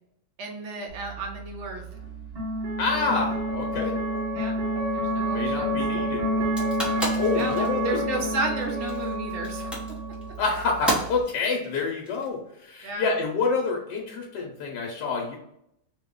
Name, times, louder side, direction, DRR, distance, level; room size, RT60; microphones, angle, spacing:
voice 1, 0.4-1.8 4.3-4.6 4.9-5.8 7.3-10.0 12.8-13.1, right 3 dB, 55° right, 1 dB, 0.8 m, -33 dB
sound 1, 0.9-11.2, equal, 25° right, 1.0 m, -29 dB
voice 2, 2.8-4.0 5.3-6.3 7.2-8.0 10.4-15.4, left 4 dB, 75° left, -1 dB, 1.2 m, -27 dB
sound 2, 6.4-12.7, right 1 dB, ahead, 0.5 m, -33 dB
3.1 x 2.3 x 3.6 m, 0.77 s
omnidirectional pair, 1.9 m